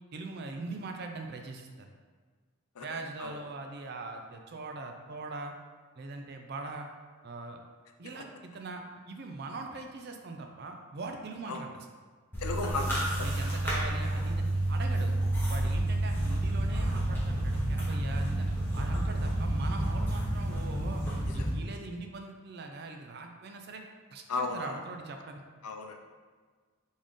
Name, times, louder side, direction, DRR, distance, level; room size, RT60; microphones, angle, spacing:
voice 1, 0.1-1.9 2.8-5.5 6.0-6.9 7.2-7.6 8.0-11.9 13.2-15.1 15.5-18.5 18.7-21.0 21.3-23.8 24.1-25.4, right 3 dB, 45° right, 3 dB, 0.4 m, -41 dB
sound 1, 12.3-21.5, right 1 dB, 10° left, 0.8 m, -30 dB
voice 2, 12.4-13.3 21.4-21.5 24.3-24.7 25.6-26.0, left 3 dB, 85° left, 4 dB, 0.5 m, -35 dB
4.2 x 3.6 x 3.1 m, 1.5 s
head